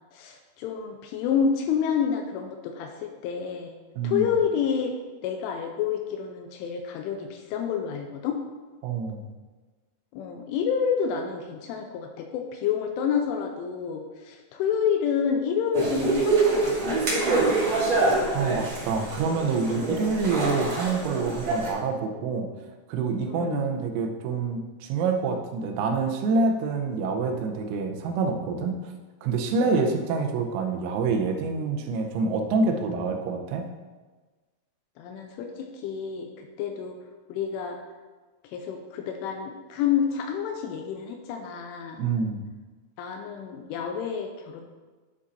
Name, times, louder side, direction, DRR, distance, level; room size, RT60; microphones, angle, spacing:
voice 1, 0.1-3.7 4.0-4.9 5.2-8.4 10.1-17.7 23.3-23.6 29.6-29.8 35.0-37.0 37.3-37.8 38.4-42.0 43.0-44.6, left 7 dB, 85° left, 4 dB, 2.9 m, -29 dB
voice 2, 4.0-4.3 8.8-9.3 18.3-22.5 22.9-28.8 29.2-33.7 42.0-42.4, right 4 dB, 85° right, 4 dB, 3.6 m, -26 dB
sound 1, 15.7-21.7, right 3 dB, 40° right, 1.8 m, -25 dB
11.5 x 5.0 x 4.2 m, 1.3 s
omnidirectional pair, 6.0 m